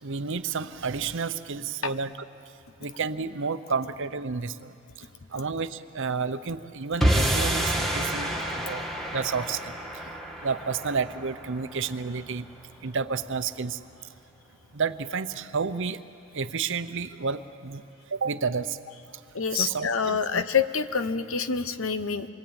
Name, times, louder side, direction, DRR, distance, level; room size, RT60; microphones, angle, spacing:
voice 1, 0.0-2.1 2.8-4.7 5.3-8.8 9.1-9.7 10.4-12.5 12.8-13.8 14.7-16.0 16.3-17.8 18.1-18.8 19.5-20.4, right 5 dB, 60° right, 12 dB, 0.8 m, -30 dB
sound 1, 7.0-13.4, right 1 dB, ahead, 2.1 m, -29 dB
voice 2, 19.3-22.3, left 6 dB, 65° left, 11 dB, 1.1 m, -27 dB
27.5 x 22.5 x 8.9 m, 2.5 s
head